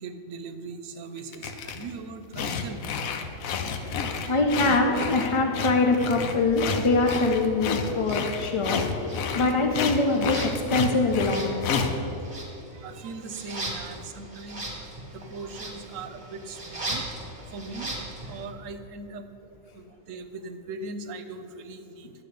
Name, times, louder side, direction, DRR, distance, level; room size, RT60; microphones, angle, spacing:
voice 1, 0.0-2.8 3.6-4.4 11.9-12.0 12.7-17.1 17.5-19.2 19.7-22.1, right 3 dB, 75° right, 9 dB, 1.0 m, -40 dB
sound 1, 1.2-1.9 2.3-12.0, left 5 dB, 85° left, 1.1 m, -30 dB
voice 2, 4.3-8.8 9.3-11.7, left 3 dB, 50° left, 3 dB, 0.3 m, -23 dB
sound 2, 7.0-7.2 8.0-8.7 9.0-18.4, right 1 dB, 25° right, 1.4 m, -39 dB
10.0 x 6.7 x 5.1 m, 2.8 s
omnidirectional pair, 1.4 m